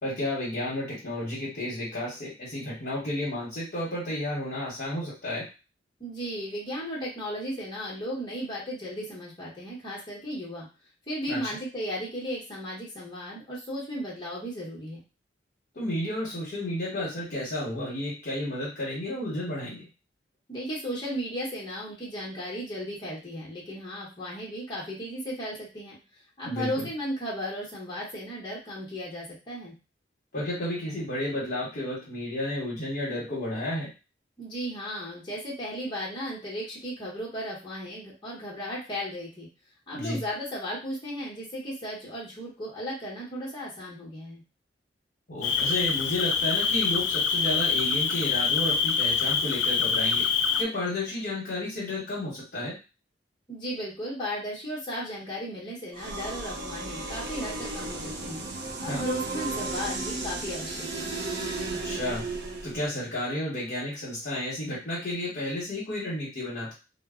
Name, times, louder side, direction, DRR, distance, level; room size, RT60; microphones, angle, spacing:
voice 1, 0.0-5.5 11.3-11.6 15.7-19.9 26.4-26.9 30.3-33.9 39.9-40.2 45.3-50.3 50.6-52.8 58.9-59.0 61.7-62.2 62.6-66.7, left 1 dB, 55° left, -6 dB, 0.9 m, -32 dB
voice 2, 6.0-10.7 11.1-15.0 20.5-26.0 26.4-29.7 34.4-39.5 39.9-44.4 53.5-58.4 58.8-61.1, equal, 25° left, -6 dB, 0.9 m, -35 dB
Cricket, 45.4-50.6, left 6 dB, 90° left, 0.3 m, -25 dB
sound 1, 55.9-62.9, right 2 dB, 65° right, 0.6 m, -34 dB
2.0 x 2.0 x 3.5 m, 0.30 s
head